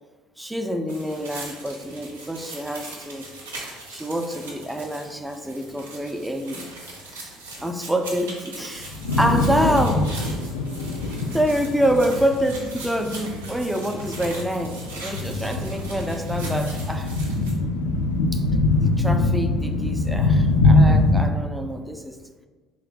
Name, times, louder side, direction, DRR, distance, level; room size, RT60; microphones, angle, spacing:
voice 1, 0.4-3.3 3.9-6.7 7.1-7.3 7.6-10.1 11.3-17.1 18.3-18.4 18.8-22.2, equal, 5° right, 6 dB, 0.4 m, -26 dB
sound 1, 0.9-17.5, right 2 dB, 90° right, 0.6 m, -40 dB
sound 2, 8.8-21.2, left 2 dB, 85° left, 0.3 m, -23 dB
3.0 x 2.3 x 3.5 m, 1.4 s
hypercardioid pair, 65°, 0 cm